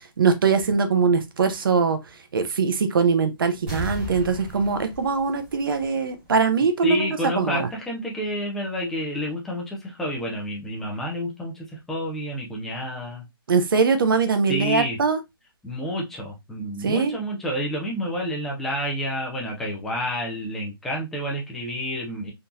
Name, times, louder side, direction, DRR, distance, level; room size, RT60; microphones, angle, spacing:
voice 1, 0.2-2.0 2.3-7.1 7.4-7.7 13.5-15.2 16.8-17.2, right 5 dB, 65° right, 0.8 m, -22 dB
sound 1, 3.7-6.3 6.6-6.7, equal, 15° right, 1.1 m, -35 dB
voice 2, 6.8-13.2 14.5-15.0 15.6-22.3, equal, 5° left, 0.4 m, -29 dB
3.7 x 2.7 x 2.3 m
hypercardioid pair, 170°, 13 cm